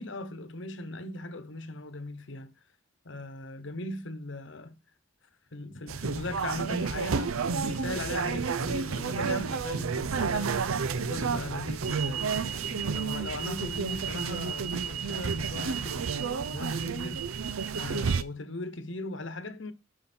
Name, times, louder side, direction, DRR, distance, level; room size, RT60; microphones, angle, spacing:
voice 1, 0.0-2.5 3.0-4.7 5.5-16.1 16.5-17.3 17.7-19.7, left 2 dB, 60° left, 1.0 m, -39 dB
sound 1, 5.9-18.2, right 5 dB, 90° right, 0.6 m, -31 dB
8.9 x 5.5 x 4.3 m
head